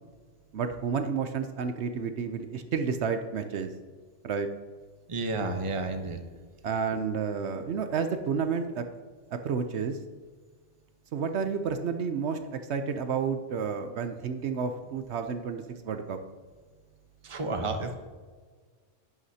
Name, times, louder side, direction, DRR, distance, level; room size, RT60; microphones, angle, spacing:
voice 1, 0.5-3.7 4.2-4.5 6.6-8.8 9.3-10.0 11.1-16.2, right 6 dB, 70° right, 7 dB, 0.9 m, -30 dB
voice 2, 5.1-6.2 17.2-17.9, right 2 dB, 30° right, 5 dB, 0.9 m, -31 dB
11.0 x 9.4 x 2.8 m, 1.5 s
omnidirectional pair, 1.2 m